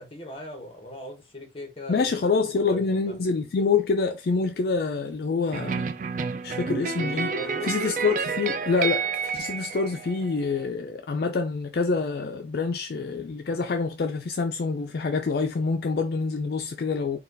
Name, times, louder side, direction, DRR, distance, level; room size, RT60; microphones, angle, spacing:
voice 1, 0.0-2.3 2.6-3.2 7.3-7.8, left 1 dB, 30° left, 1.1 m, -40 dB
voice 2, 1.9-5.9 6.4-7.3 7.6-17.2, left 4 dB, 55° left, 0.4 m, -26 dB
sound 1, 5.5-10.6, right 5 dB, 45° right, 0.4 m, -30 dB
4.3 x 2.3 x 3.8 m
head